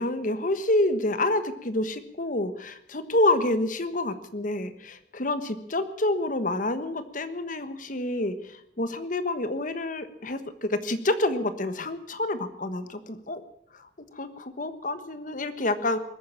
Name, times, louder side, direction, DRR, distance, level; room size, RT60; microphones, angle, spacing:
voice 1, 0.0-8.3 8.8-10.4 10.7-13.4 14.2-16.0, left 2 dB, 45° left, 11 dB, 1.3 m, -28 dB
21.0 x 9.5 x 7.2 m, 0.76 s
head